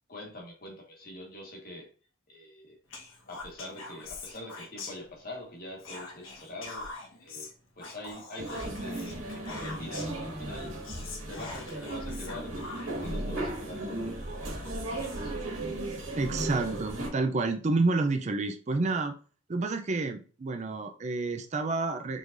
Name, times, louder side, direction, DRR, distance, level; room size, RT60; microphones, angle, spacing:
voice 1, 0.1-1.9 2.3-2.8 3.0-6.9 7.2-7.5 7.8-10.8 11.3-15.3, left 1 dB, 45° left, 0 dB, 1.4 m, -44 dB
Whispering, 2.9-5.4 5.8-10.2 10.6-10.7 10.8-13.1, left 3 dB, 80° left, 1.3 m, -44 dB
sound 1, 8.4-17.1, right 1 dB, 90° right, 1.9 m, -36 dB
voice 2, 16.2-19.1 19.5-22.2, right 3 dB, 35° right, 7 dB, 0.4 m, -29 dB
5.0 x 3.8 x 2.6 m, 0.38 s
head